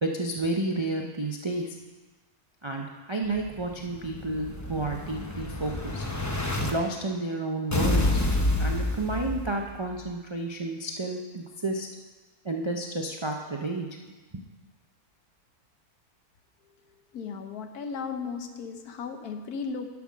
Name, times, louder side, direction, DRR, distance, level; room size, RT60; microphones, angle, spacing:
voice 1, 0.0-1.7 2.6-6.1 6.7-8.2 8.6-11.9 12.4-13.9 14.3-14.4, right 2 dB, 40° right, 1 dB, 0.4 m, -31 dB
Explosion, 3.4-6.7 7.7-9.7, left 2 dB, 15° left, 0.6 m, -28 dB
voice 2, 17.1-20.0, left 5 dB, 85° left, 6 dB, 1.4 m, -36 dB
10.5 x 6.1 x 6.2 m, 1.2 s
omnidirectional pair, 1.6 m